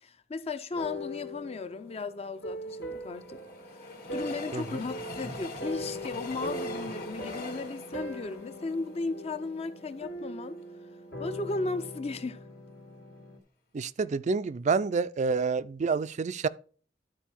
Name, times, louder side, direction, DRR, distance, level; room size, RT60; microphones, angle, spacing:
voice 1, 0.0-3.4 3.7-10.6 11.2-12.4, left 3 dB, 35° left, 0.5 m, -36 dB
sound 1, 0.7-13.4, equal, 70° left, 1.6 m, -41 dB
Train, 2.4-9.6 10.2-10.3 10.5-10.6, left 2 dB, 55° left, 1.6 m, -43 dB
voice 2, 13.7-16.5, right 4 dB, 40° right, 0.4 m, -28 dB
11.5 x 4.6 x 4.4 m
head